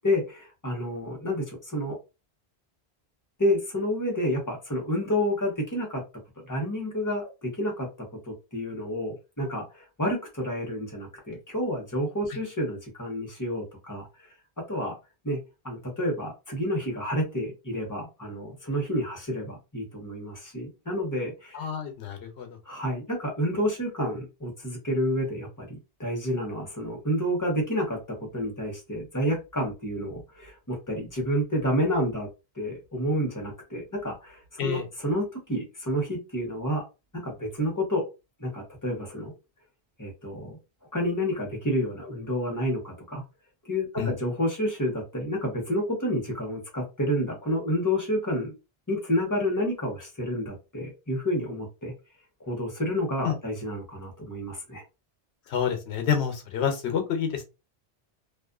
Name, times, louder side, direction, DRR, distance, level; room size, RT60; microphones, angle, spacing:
voice 1, 0.0-2.0 3.4-6.0 6.5-7.9 8.3-14.3 14.7-14.9 15.2-15.4 15.6-21.6 22.6-28.0 28.3-32.3 32.6-36.8 37.2-38.0 38.4-39.3 40.0-40.6 40.9-43.2 43.6-48.5 48.9-51.9 52.5-54.8, equal, 20° left, 0 dB, 0.9 m, -29 dB
voice 2, 21.5-22.6 34.6-34.8 44.0-44.1 53.2-53.4 55.5-57.4, left 8 dB, 85° left, 6 dB, 1.0 m, -28 dB
2.5 x 2.4 x 2.3 m, 0.27 s
omnidirectional pair, 1.1 m